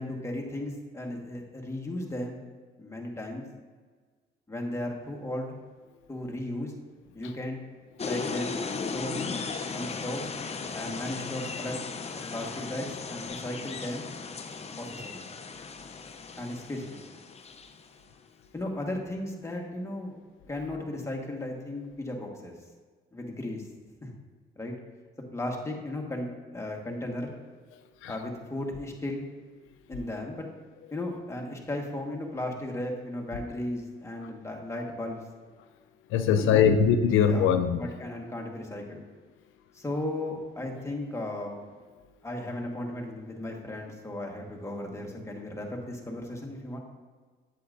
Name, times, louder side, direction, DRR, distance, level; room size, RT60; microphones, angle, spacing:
voice 1, 0.0-2.4 2.8-3.4 4.5-5.5 6.1-6.7 7.1-7.6 8.1-8.6 8.9-9.4 9.7-10.3 10.7-11.8 12.3-14.1 14.8-15.2 16.4-17.0 18.5-20.1 20.5-22.5 23.1-23.6 24.0-24.1 24.6-24.7 25.3-27.3 28.1-29.3 29.9-30.5 30.9-35.2 36.3-36.8 37.3-39.0 39.7-41.6 42.2-46.8, left 1 dB, 15° left, 0 dB, 1.5 m, -35 dB
sound 1, 8.0-17.8, left 5 dB, 30° left, 0.6 m, -36 dB
voice 2, 36.1-37.8, left 7 dB, 90° left, 8 dB, 0.5 m, -21 dB
8.4 x 7.7 x 2.6 m, 1.5 s
cardioid pair, 90°, 20 cm